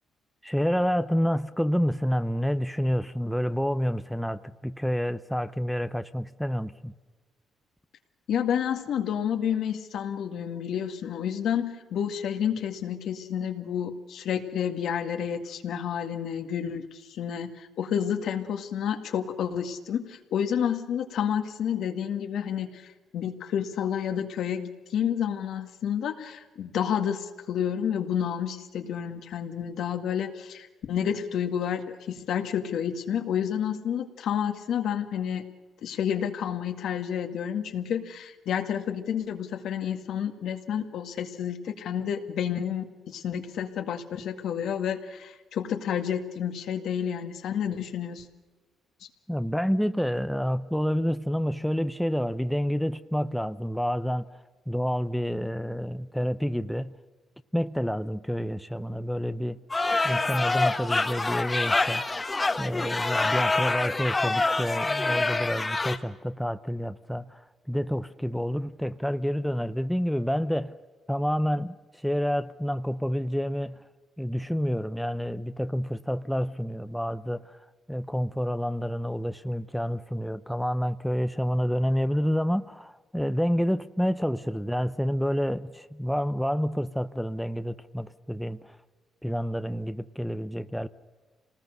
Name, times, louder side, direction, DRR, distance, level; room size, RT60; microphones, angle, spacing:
voice 1, 0.4-6.9 49.3-54.2 54.7-57.0 57.5-59.6 60.0-62.1 62.6-70.8 71.1-73.8 74.2-77.6 77.9-88.8 89.2-90.9, equal, ahead, 0.7 m, -28 dB
voice 2, 8.3-35.5 35.8-48.2, left 8 dB, 75° left, 1.9 m, -30 dB
sound 1, 59.7-66.0, left 3 dB, 20° left, 1.3 m, -26 dB
26.5 x 19.5 x 6.6 m
cardioid pair, 90°, 0 cm